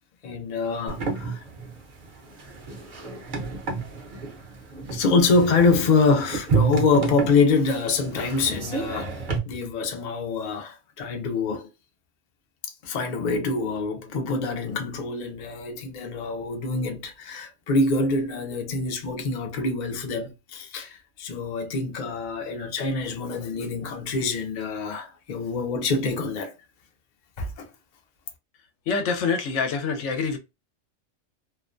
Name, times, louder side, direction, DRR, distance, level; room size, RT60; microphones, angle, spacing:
voice 1, 0.2-1.4 4.9-9.2 9.5-11.7 12.8-26.5 27.4-27.7, left 3 dB, 50° left, 0.5 m, -25 dB
sound 1, 0.9-9.4, right 4 dB, 45° right, 0.8 m, -30 dB
voice 2, 28.9-30.4, left 5 dB, 75° left, 0.9 m, -25 dB
2.4 x 2.1 x 2.4 m
omnidirectional pair, 1.3 m